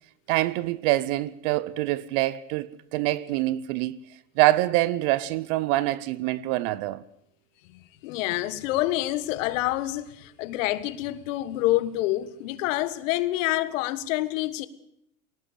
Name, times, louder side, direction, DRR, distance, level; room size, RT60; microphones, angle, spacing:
voice 1, 0.3-4.0 4.4-7.0, right 17 dB, 50° right, 0.9 m, -25 dB
voice 2, 8.0-14.7, left 16 dB, 60° left, 1.6 m, -27 dB
19.0 x 18.0 x 8.2 m
hypercardioid pair, 95°, 43 cm